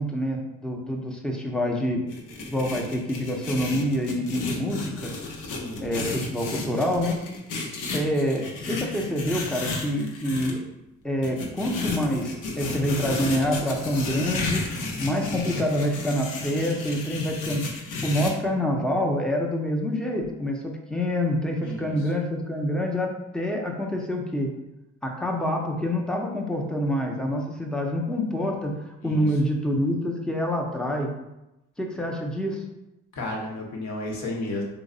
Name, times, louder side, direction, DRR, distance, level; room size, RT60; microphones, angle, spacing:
voice 1, 0.0-2.0 2.4-5.1 5.8-7.2 7.9-10.6 11.0-14.6 15.0-17.7 18.0-24.5 25.0-31.1 31.8-32.6, equal, 5° left, 0 dB, 0.5 m, -26 dB
sound 1, 2.1-10.5 11.2-18.3, left 3 dB, 90° left, 0.7 m, -33 dB
voice 2, 5.4-5.8 21.6-22.1 29.0-29.3 33.1-34.6, left 1 dB, 65° left, -1 dB, 0.9 m, -33 dB
3.1 x 2.0 x 3.7 m, 0.93 s
cardioid pair, 90°, 30 cm